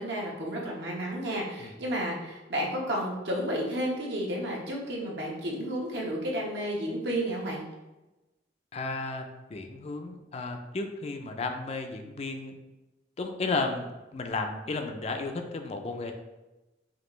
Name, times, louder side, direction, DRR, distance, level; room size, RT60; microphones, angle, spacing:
voice 1, 0.0-7.6, equal, 70° right, -2 dB, 1.0 m, -32 dB
voice 2, 8.7-12.5 13.2-13.9 14.1-16.1, left 3 dB, 35° left, 5 dB, 0.4 m, -33 dB
5.1 x 2.5 x 3.1 m, 1.1 s
head